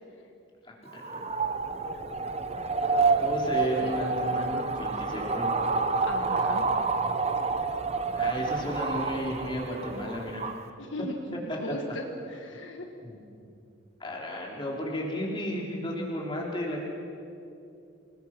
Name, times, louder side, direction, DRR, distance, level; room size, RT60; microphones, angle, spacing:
voice 1, 0.6-1.2 3.2-5.5 8.1-10.5 11.5-11.6 13.0-13.2 14.0-16.8, equal, 25° left, -2 dB, 3.6 m, -33 dB
sound 1, 0.9-10.6, right 4 dB, 30° right, 0.9 m, -28 dB
voice 2, 3.6-3.9 6.0-7.0 10.8-12.9, left 1 dB, 65° left, 3 dB, 1.6 m, -38 dB
27.5 x 19.0 x 6.0 m, 2.6 s
head